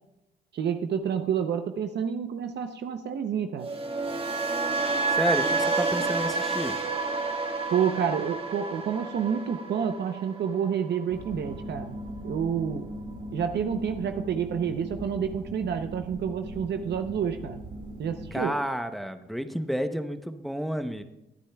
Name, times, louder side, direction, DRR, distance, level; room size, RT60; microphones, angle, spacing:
voice 1, 0.5-3.7 7.7-12.9 13.3-17.6 18.0-18.5, right 7 dB, 60° right, 7 dB, 0.8 m, -29 dB
sound 1, 3.6-11.7 12.0-12.3, right 3 dB, 30° right, 1.9 m, -30 dB
voice 2, 5.1-6.8 18.3-21.0, equal, ahead, 8 dB, 0.8 m, -30 dB
sound 2, 11.1-18.4, equal, 85° right, 3.7 m, -39 dB
21.5 x 10.0 x 2.3 m, 0.92 s
cardioid pair, 90°, 20 cm